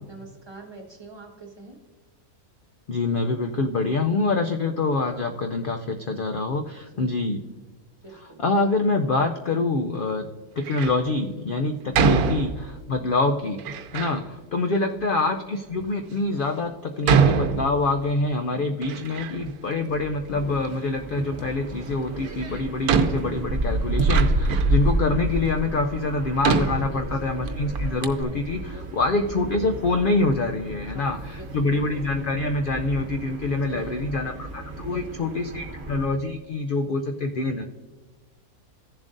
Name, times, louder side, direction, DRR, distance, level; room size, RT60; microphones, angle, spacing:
voice 1, 0.1-1.8 6.7-7.1 8.0-8.4 14.6-14.9 26.7-27.6 28.5-28.9 30.8-31.8 33.5-34.0 34.7-35.3, right 3 dB, 20° right, 0 dB, 1.4 m, -45 dB
voice 2, 2.9-7.4 8.4-10.3 10.6-13.6 13.9-37.6, left 3 dB, 65° left, 5 dB, 0.5 m, -25 dB
Door, 10.6-11.1 11.9-12.9 13.6-14.2 15.0-15.1 15.8-15.9 17.0-18.2 18.5-19.6 19.9-20.7 22.1-22.2 22.9-24.8 25.5-25.6 26.4-27.5 27.8-27.9 28.0-28.2, right 5 dB, 85° right, 1.2 m, -24 dB
sound 1, 20.3-36.1, right 2 dB, 50° right, 1.2 m, -30 dB
15.5 x 7.2 x 2.6 m, 1.3 s
omnidirectional pair, 1.5 m